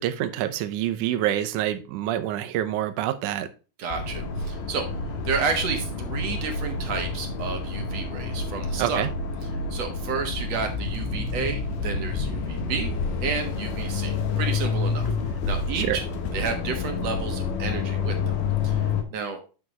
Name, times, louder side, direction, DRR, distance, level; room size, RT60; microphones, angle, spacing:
voice 1, 0.0-3.5 8.8-9.1 15.7-16.0, right 12 dB, 80° right, 2.2 m, -26 dB
voice 2, 3.8-4.9 5.2-9.1 9.7-12.9 13.2-15.1 15.5-16.0 16.3-18.4 18.6-18.8 19.1-19.4, right 5 dB, 60° right, 2.2 m, -31 dB
sound 1, 3.9-19.0, left 4 dB, 75° left, 2.7 m, -28 dB
9.1 x 5.9 x 3.0 m
omnidirectional pair, 3.7 m